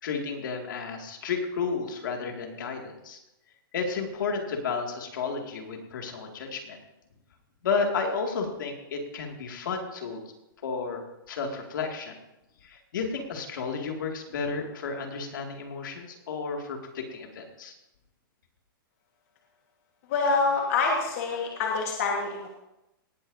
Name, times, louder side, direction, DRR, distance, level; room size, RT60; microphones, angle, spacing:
voice 1, 0.0-3.2 3.7-6.8 7.6-10.2 10.6-11.0 11.3-12.2 12.6-17.7, left 5 dB, 60° left, 2 dB, 2.3 m, -32 dB
voice 2, 20.1-22.5, left 4 dB, 40° left, 0 dB, 1.6 m, -26 dB
18.0 x 12.0 x 2.7 m, 0.92 s
hypercardioid pair, 175°, 12 cm